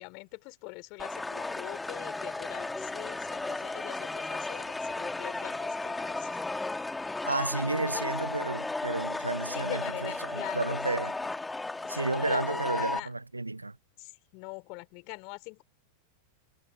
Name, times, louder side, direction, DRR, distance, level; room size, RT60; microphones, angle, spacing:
voice 1, 0.0-6.4 7.0-7.1 7.9-8.1 9.5-10.8 11.1-11.4 11.8-13.1 14.0-15.6, left 32 dB, 45° left, 5.0 m, -43 dB
sound 1, 1.0-13.0, left 2 dB, 10° left, 2.2 m, -34 dB
voice 2, 7.2-11.1 11.9-13.8, right 2 dB, 85° right, 0.9 m, -32 dB
figure-of-eight pair, 90°, 0 cm